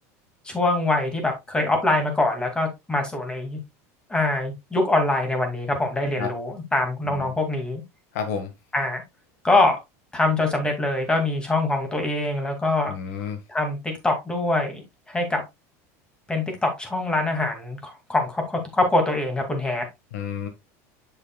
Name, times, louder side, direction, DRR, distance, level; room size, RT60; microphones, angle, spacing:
voice 1, 0.4-3.6 4.1-7.8 8.7-9.0 9.4-9.8 10.1-13.0 13.5-15.4 16.3-19.9, left 2 dB, 10° left, 2.3 m, -24 dB
voice 2, 8.1-8.5 12.9-13.4 20.1-20.5, left 7 dB, 85° left, 1.6 m, -30 dB
7.2 x 6.7 x 2.3 m
supercardioid pair, 125°, 8 cm